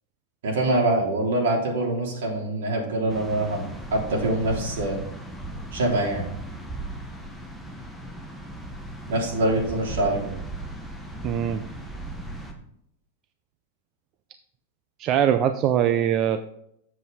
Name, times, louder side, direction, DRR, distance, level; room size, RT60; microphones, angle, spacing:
voice 1, 0.4-5.0 5.7-6.2 9.1-10.3, right 1 dB, 80° right, -1 dB, 3.6 m, -24 dB
sound 1, 3.1-12.5, right 1 dB, ahead, 0.8 m, -37 dB
voice 2, 11.2-11.6 15.0-16.5, right 10 dB, 25° right, 9 dB, 0.4 m, -22 dB
7.8 x 7.5 x 4.1 m, 0.74 s
supercardioid pair, 180°, 0 cm